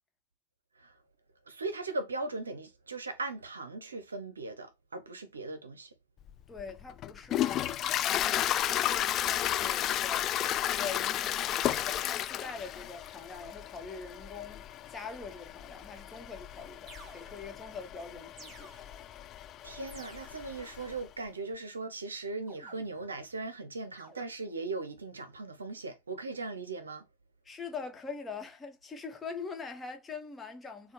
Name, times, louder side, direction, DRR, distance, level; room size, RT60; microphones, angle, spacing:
voice 1, 1.5-5.9 19.6-27.1, right 3 dB, 85° right, 0.6 m, -39 dB
Toilet flush, 6.3-21.0, left 12 dB, 40° left, 0.3 m, -33 dB
voice 2, 6.5-7.7 8.0-10.3 10.7-11.6 11.9-18.7 27.4-30.9, left 5 dB, 20° left, 1.0 m, -43 dB
sound 1, 16.9-17.7 18.4-19.2 19.9-20.7 22.5-23.3 24.0-24.2, right 2 dB, 30° right, 2.0 m, -54 dB
4.2 x 2.2 x 3.2 m
figure-of-eight pair, 80°, 0 cm